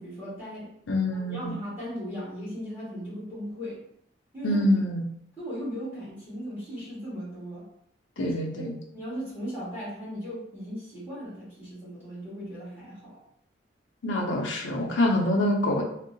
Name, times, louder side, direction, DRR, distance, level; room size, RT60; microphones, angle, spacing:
voice 1, 0.0-0.7 1.1-3.8 4.3-4.7 5.4-7.7 8.2-8.6 8.9-13.2, equal, 10° right, -10 dB, 1.4 m, -37 dB
voice 2, 0.9-1.6 4.4-5.1 8.2-8.7 14.0-15.8, left 1 dB, 85° left, 0 dB, 0.5 m, -25 dB
3.6 x 2.1 x 2.6 m, 0.69 s
head